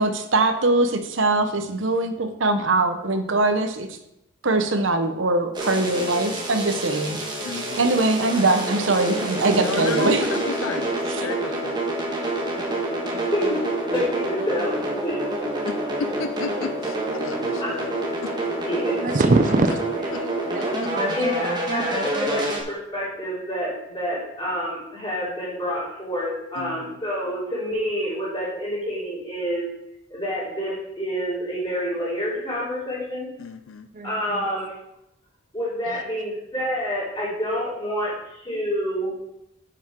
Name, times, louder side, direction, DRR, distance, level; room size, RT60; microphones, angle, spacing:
voice 1, 0.0-3.9 4.4-7.2 7.8-10.2, right 2 dB, 70° right, 7 dB, 0.9 m, -22 dB
sound 1, 5.5-22.6, right 1 dB, 20° right, 1.5 m, -27 dB
voice 2, 7.4-7.9 9.5-11.7 15.7-17.9 18.2-18.3 20.1-20.2 20.6-21.2 26.6-27.0 33.4-33.9, left 5 dB, 85° left, 10 dB, 0.4 m, -34 dB
voice 3, 13.9-14.7 15.0-15.2 18.6-19.0 21.0-22.4 22.7-29.6 30.1-33.3 34.0-34.7 35.5-39.1, equal, 20° left, -11 dB, 3.0 m, -28 dB
voice 4, 19.0-21.1 22.3-22.4 33.9-34.5 35.9-36.0, right 2 dB, 40° right, 9 dB, 0.5 m, -24 dB
9.2 x 6.0 x 4.5 m, 0.83 s
head